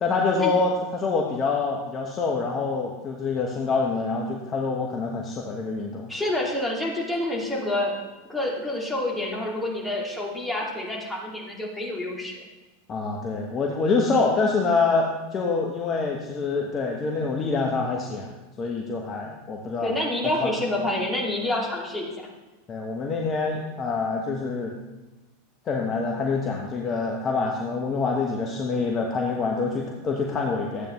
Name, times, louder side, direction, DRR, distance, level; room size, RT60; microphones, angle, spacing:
voice 1, 0.0-6.1 12.9-18.3 18.6-19.9 20.4-20.5 22.7-24.7 25.7-30.9, left 4 dB, 30° left, 0 dB, 1.2 m, -26 dB
voice 2, 6.1-12.4 19.8-22.3, left 1 dB, 5° left, -4 dB, 2.7 m, -28 dB
13.0 x 8.5 x 3.2 m, 1.1 s
hypercardioid pair, 90°, 0 cm